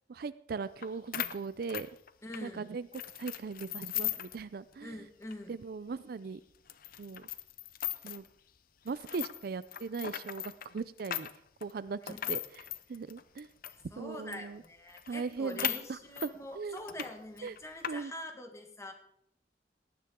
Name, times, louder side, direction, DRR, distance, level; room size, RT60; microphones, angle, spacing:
voice 1, 0.1-1.9 2.4-2.9 3.2-5.1 5.5-6.4 7.0-7.3 8.0-8.2 8.8-11.3 11.6-12.6 12.9-13.5 14.0-14.6 15.1-16.8 17.4-17.6 17.9-18.1, right 4 dB, 55° right, 16 dB, 0.4 m, -39 dB
sound 1, 0.8-0.9 1.1-2.5 2.9-4.4 4.7-4.8 5.2-5.3 5.9-6.0 6.7-8.3 8.9-13.8 14.3-14.4 14.6-14.7 15.0-16.3 16.8-17.1 17.4-17.9, left 12 dB, 55° left, 0.6 m, -38 dB
voice 2, 2.2-2.7 4.8-5.6 12.1-12.2 13.7-18.9, left 1 dB, 15° left, 5 dB, 1.6 m, -45 dB
18.5 x 9.6 x 3.7 m, 0.71 s
head